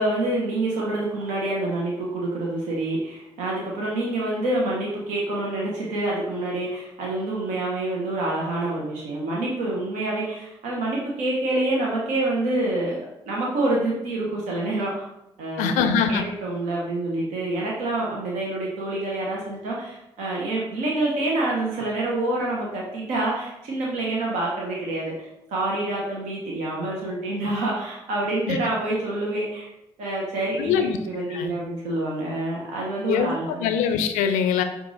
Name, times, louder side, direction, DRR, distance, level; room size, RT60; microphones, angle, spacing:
voice 1, 0.0-13.0 13.3-14.9 15.4-29.7 30.0-33.7, right 2 dB, 85° right, -4 dB, 0.9 m, -27 dB
voice 2, 15.6-16.2 28.5-28.6 30.6-31.0 31.3-31.5 33.1-34.6, left 7 dB, 85° left, 8 dB, 0.4 m, -23 dB
4.8 x 2.5 x 3.9 m, 0.86 s
hypercardioid pair, 45°, 13 cm